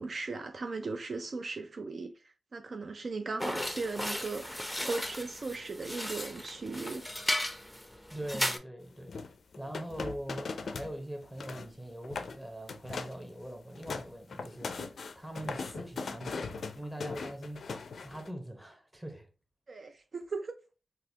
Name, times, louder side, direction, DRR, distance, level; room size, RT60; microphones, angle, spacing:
voice 1, 0.0-2.1 2.5-7.0 19.7-20.5, right 3 dB, 55° right, 0.3 m, -37 dB
sound 1, 3.4-8.6, left 1 dB, 5° left, 0.5 m, -35 dB
voice 2, 8.1-17.7 18.0-19.3, right 1 dB, 10° right, 1.0 m, -42 dB
sound 2, 9.1-10.9 11.2-11.7 12.0-12.4 12.7-13.2 13.6-18.3, left 4 dB, 70° left, 0.4 m, -39 dB
3.9 x 2.3 x 2.8 m
cardioid pair, 60°, 0 cm